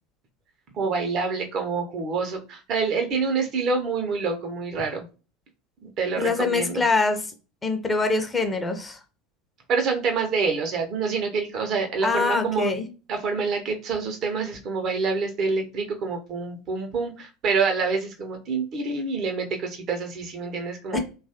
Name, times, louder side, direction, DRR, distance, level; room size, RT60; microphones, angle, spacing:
voice 1, 0.7-5.1 5.8-6.8 9.7-12.7 13.1-21.0, right 4 dB, 45° right, 4 dB, 0.7 m, -27 dB
voice 2, 6.2-7.2 7.6-9.0 12.0-12.9 20.9-21.0, left 3 dB, 20° left, 6 dB, 0.6 m, -24 dB
3.0 x 2.3 x 2.8 m, 0.33 s
figure-of-eight pair, 75°, 0 cm